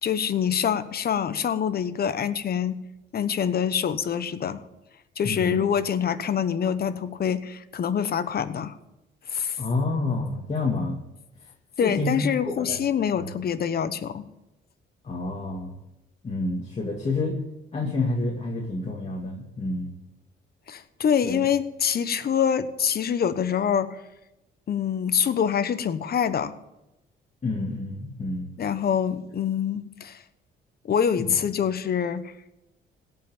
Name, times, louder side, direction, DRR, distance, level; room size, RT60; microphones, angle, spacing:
voice 1, 0.0-2.8 3.1-4.6 5.2-8.7 9.3-9.6 11.8-14.3 20.7-24.0 24.7-26.6 28.6-30.2 30.8-32.3, left 8 dB, 50° left, 13 dB, 1.0 m, -25 dB
voice 2, 5.2-5.6 9.6-11.0 11.8-12.2 12.6-12.8 13.2-13.3 15.0-15.7 16.2-17.4 17.7-19.9 21.2-21.4 27.4-28.5 31.2-31.3, left 2 dB, 35° left, -2 dB, 2.2 m, -28 dB
17.0 x 5.8 x 9.0 m, 0.94 s
cardioid pair, 90°, 20 cm